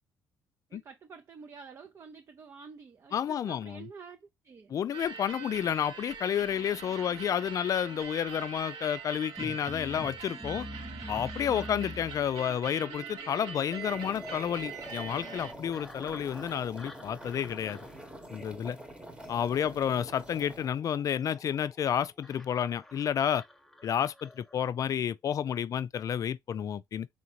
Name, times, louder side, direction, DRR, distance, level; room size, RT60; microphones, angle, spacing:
voice 1, 0.7-4.8, right 5 dB, 40° right, 0.6 m, -49 dB
voice 2, 3.1-3.9 4.7-10.7 11.1-17.8 18.3-18.8 19.3-23.4 23.8-27.1, left 9 dB, 45° left, 0.3 m, -30 dB
sound 1, 4.9-15.5, right 7 dB, 70° right, 1.0 m, -43 dB
sound 2, 9.4-24.6, left 1 dB, 5° left, 0.8 m, -47 dB
sound 3, 13.8-20.7, right 1 dB, 15° right, 1.0 m, -47 dB
3.8 x 3.5 x 2.9 m
cardioid pair, 100°, 8 cm